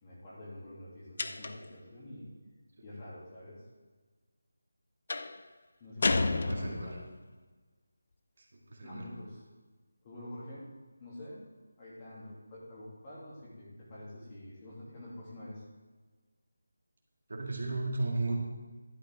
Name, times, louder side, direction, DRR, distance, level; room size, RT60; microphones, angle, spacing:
voice 1, 0.0-2.3 2.8-3.6 5.8-7.2 8.8-9.4 10.0-10.7 11.0-11.4 11.8-15.6, left 1 dB, 20° left, -7 dB, 2.8 m, -47 dB
sound 1, 1.2-1.8 5.1-5.4 6.0-7.1, left 3 dB, 45° left, 0.6 m, -31 dB
voice 2, 6.2-7.0 8.4-9.1 17.3-18.3, right 2 dB, 55° right, 0 dB, 1.9 m, -35 dB
11.5 x 9.5 x 3.7 m, 1.4 s
figure-of-eight pair, 175°, 0 cm